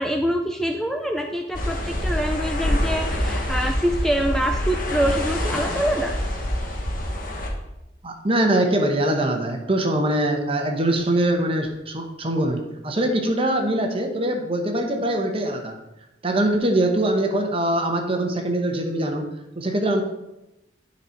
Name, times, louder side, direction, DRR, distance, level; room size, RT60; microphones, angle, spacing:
voice 1, 0.0-6.1, equal, ahead, 3 dB, 0.4 m, -25 dB
sound 1, 1.5-7.5, left 1 dB, 50° left, 1.3 m, -26 dB
voice 2, 8.0-15.7 16.2-19.3 19.6-20.0, right 1 dB, 30° right, 4 dB, 1.0 m, -23 dB
10.0 x 4.2 x 4.5 m, 0.93 s
head